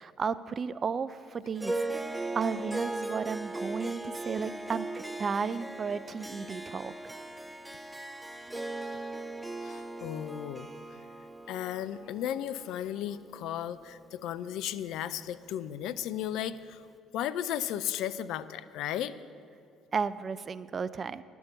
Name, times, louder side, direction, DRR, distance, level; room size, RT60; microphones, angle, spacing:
voice 1, 0.0-1.8 2.3-6.9 19.9-21.2, right 5 dB, 40° right, 16 dB, 0.4 m, -33 dB
Harp, 1.6-14.1, right 2 dB, 10° right, 0.7 m, -38 dB
voice 2, 9.6-10.7 11.5-16.8 17.1-19.1, left 11 dB, 65° left, 14 dB, 0.4 m, -35 dB
11.0 x 7.0 x 8.2 m, 2.4 s
hypercardioid pair, 55°, 0 cm